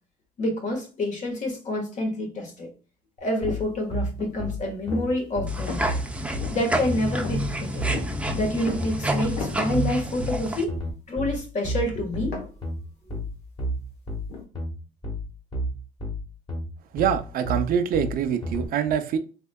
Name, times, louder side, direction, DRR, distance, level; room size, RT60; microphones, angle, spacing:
voice 1, 0.4-2.7 3.2-5.9 6.5-7.9 8.3-10.8 11.1-12.4, left 1 dB, 45° left, 1.4 m, -28 dB
sound 1, 3.4-18.7, equal, 25° left, 1.4 m, -31 dB
sound 2, 3.5-10.0 12.2-14.5, left 3 dB, 85° left, 1.1 m, -39 dB
sound 3, 5.5-10.6, right 1 dB, 5° right, 0.5 m, -29 dB
voice 2, 16.9-19.2, right 8 dB, 60° right, 0.5 m, -24 dB
3.5 x 3.3 x 2.2 m
cardioid pair, 110°, 17 cm